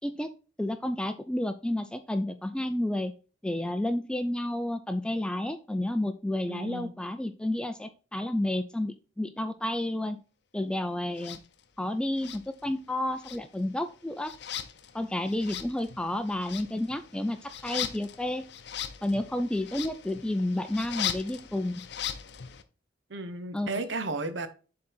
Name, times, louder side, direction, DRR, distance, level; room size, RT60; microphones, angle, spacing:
voice 1, 0.6-3.1 3.4-10.2 10.5-11.4 11.8-14.3 14.9-18.5 19.0-21.8 23.5-23.8, left 1 dB, 5° left, 0.3 m, -31 dB
voice 2, 6.5-6.9 23.1-24.5, right 2 dB, 75° right, 0.9 m, -34 dB
sound 1, 11.2-11.4 12.2-12.9 13.2-22.6, left 9 dB, 60° left, 0.6 m, -39 dB
7.1 x 3.8 x 4.3 m
head